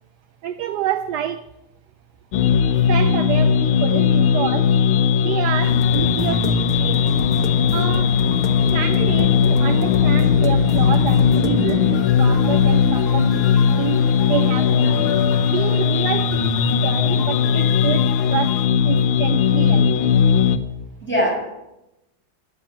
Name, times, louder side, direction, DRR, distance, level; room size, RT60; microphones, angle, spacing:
voice 1, 0.4-1.4 2.9-4.8 5.2-7.1 7.7-8.2 8.7-15.1 15.5-20.1, right 10 dB, 70° right, 1.0 m, -28 dB
sound 1, 2.3-20.6, left 7 dB, 80° left, 1.7 m, -18 dB
voice 2, 2.6-2.9 21.0-21.5, equal, 5° left, 6.8 m, -23 dB
sound 2, 5.6-18.7, left 4 dB, 55° left, 1.6 m, -30 dB
13.0 x 8.4 x 9.0 m
omnidirectional pair, 2.1 m